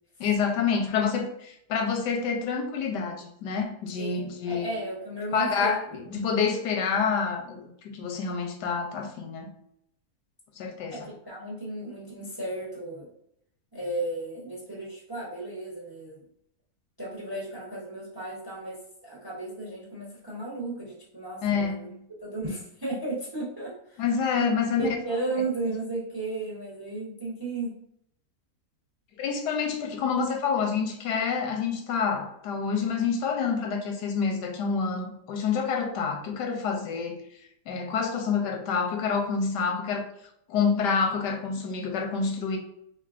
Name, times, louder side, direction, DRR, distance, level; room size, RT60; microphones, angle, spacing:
voice 1, 0.2-4.7 5.3-9.5 10.6-11.0 21.4-22.0 24.0-24.8 29.2-37.2 37.7-40.1 40.5-42.6, left 5 dB, 90° left, 3 dB, 1.3 m, -27 dB
voice 2, 4.0-5.9 10.9-13.1 13.7-16.2 17.0-21.9 22.2-24.0 24.7-27.7, right 2 dB, 25° right, -4 dB, 0.5 m, -34 dB
3.6 x 3.2 x 2.4 m, 0.73 s
omnidirectional pair, 1.8 m